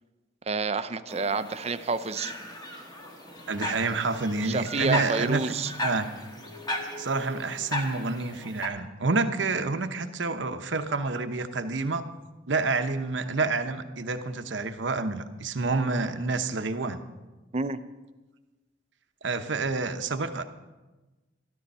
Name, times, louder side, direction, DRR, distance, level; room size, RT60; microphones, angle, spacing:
voice 1, 0.5-2.3 4.4-5.7 17.5-17.8, right 4 dB, 35° right, 11 dB, 0.6 m, -29 dB
sound 1, 1.1-8.7, left 1 dB, 20° left, 1.5 m, -36 dB
voice 2, 3.5-6.1 7.0-12.1 12.5-17.0 19.2-20.4, right 3 dB, 75° right, 9 dB, 0.9 m, -28 dB
13.0 x 13.0 x 5.5 m, 1.2 s
head